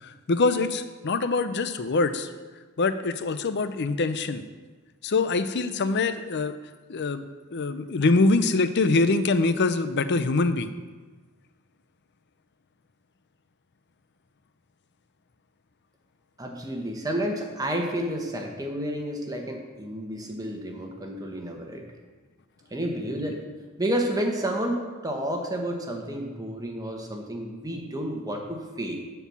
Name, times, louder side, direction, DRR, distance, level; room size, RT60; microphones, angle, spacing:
voice 1, 0.0-2.3 2.8-4.4 5.0-6.6 6.9-7.3 7.5-10.7, left 3 dB, 50° left, 11 dB, 0.6 m, -24 dB
voice 2, 16.4-21.9 22.7-23.4 23.8-29.0, right 1 dB, 15° right, 2 dB, 1.2 m, -30 dB
11.0 x 4.7 x 7.0 m, 1.4 s
head